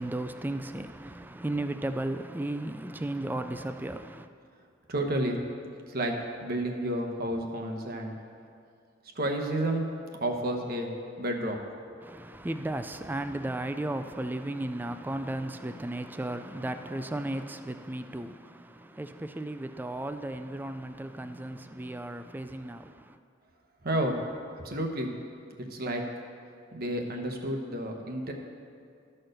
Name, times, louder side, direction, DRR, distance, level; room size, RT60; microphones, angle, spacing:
voice 1, 0.0-4.3 12.0-23.1, right 1 dB, 10° right, 0.3 m, -35 dB
voice 2, 4.9-5.4 5.9-6.1 6.4-8.2 9.2-9.9 10.2-11.6 23.8-24.2 24.6-25.1 25.7-26.0 26.7-28.3, right 1 dB, 50° right, 1.0 m, -30 dB
12.5 x 4.4 x 6.5 m
head